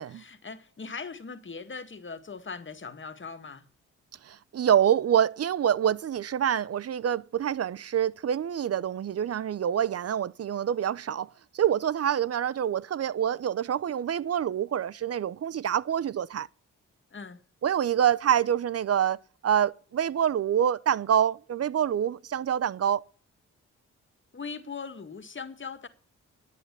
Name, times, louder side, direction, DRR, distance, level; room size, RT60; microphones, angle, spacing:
voice 1, 0.0-3.7 17.1-17.5 24.3-25.9, left 5 dB, 40° left, 2.0 m, -40 dB
voice 2, 4.2-11.3 11.5-16.5 17.6-19.2 19.4-23.0, right 9 dB, 55° right, 0.7 m, -26 dB
10.5 x 8.4 x 8.8 m
supercardioid pair, 55°, 30 cm